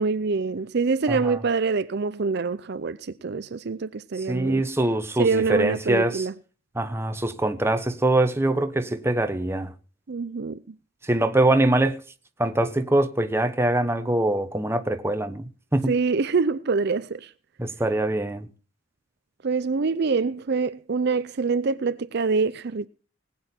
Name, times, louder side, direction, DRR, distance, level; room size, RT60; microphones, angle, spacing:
voice 1, 0.0-4.6 5.2-6.3 10.1-10.7 15.9-17.3 19.4-22.9, right 4 dB, 55° right, 0.5 m, -25 dB
voice 2, 1.1-1.4 4.3-6.2 6.7-9.7 11.0-12.0 12.4-15.9 17.6-18.5, right 1 dB, 15° right, 1.0 m, -23 dB
20.0 x 8.7 x 4.4 m
head